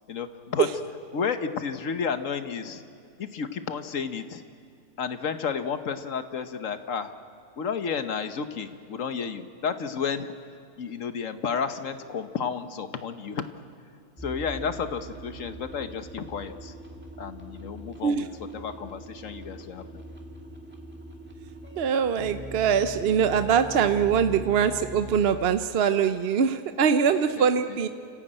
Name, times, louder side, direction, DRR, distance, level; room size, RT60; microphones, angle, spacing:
voice 1, 0.1-0.7 1.1-2.8 3.2-4.4 5.0-7.1 7.6-10.3 10.8-13.5 14.2-16.7 17.2-18.3 18.5-19.9 27.4-27.9, left 6 dB, 55° left, 10 dB, 1.3 m, -32 dB
sound 1, 14.2-25.3, right 2 dB, 5° right, 2.3 m, -42 dB
voice 2, 21.8-27.9, right 7 dB, 55° right, 9 dB, 0.7 m, -23 dB
29.5 x 15.0 x 8.9 m, 2.6 s
omnidirectional pair, 1.7 m